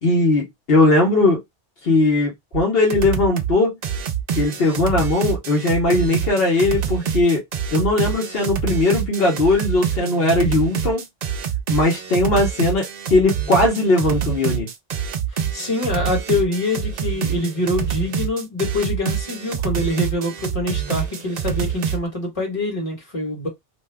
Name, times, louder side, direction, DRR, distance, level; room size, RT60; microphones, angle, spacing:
voice 1, 0.0-1.4 1.8-3.8 4.4-7.4 7.7-11.0 11.7-14.7, left 2 dB, 70° left, 1.1 m, -19 dB
sound 1, 2.5-2.6 2.9-3.5 3.8-22.0, right 8 dB, 55° right, 0.5 m, -26 dB
voice 2, 15.5-23.5, left 2 dB, 35° left, 1.4 m, -25 dB
2.6 x 2.3 x 3.3 m
omnidirectional pair, 1.0 m